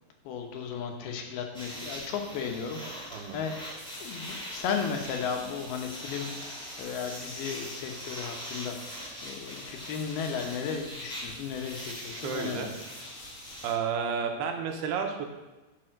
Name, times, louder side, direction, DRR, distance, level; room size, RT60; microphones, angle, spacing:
voice 1, 0.2-3.6 4.0-8.8 9.2-12.7, left 6 dB, 80° left, 3 dB, 3.1 m, -35 dB
sound 1, 1.5-13.7, equal, ahead, 2.1 m, -42 dB
voice 2, 3.1-3.4 12.0-12.7 13.6-15.3, right 6 dB, 90° right, 4 dB, 3.1 m, -31 dB
sound 2, 3.8-13.7, left 2 dB, 45° left, 1.7 m, -48 dB
10.5 x 5.4 x 6.5 m, 1.1 s
omnidirectional pair, 4.4 m